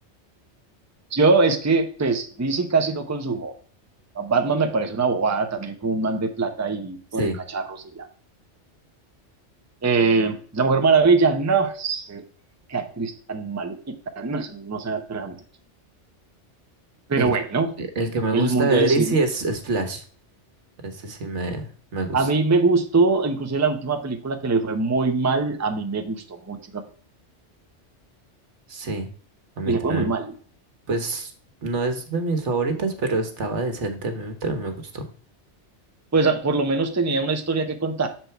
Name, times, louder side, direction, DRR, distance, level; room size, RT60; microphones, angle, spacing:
voice 1, 1.1-3.5 4.1-8.1 9.8-12.2 12.7-13.8 14.2-15.4 17.1-17.7 18.3-19.2 22.1-26.8 29.6-30.3 36.1-38.1, right 4 dB, 15° right, 6 dB, 0.6 m, -22 dB
voice 2, 17.8-20.0 20.8-22.3 28.7-29.1 29.6-30.1 30.9-31.3 31.6-35.1, right 3 dB, 75° right, 6 dB, 1.5 m, -26 dB
6.8 x 4.4 x 4.4 m, 0.43 s
omnidirectional pair, 1.2 m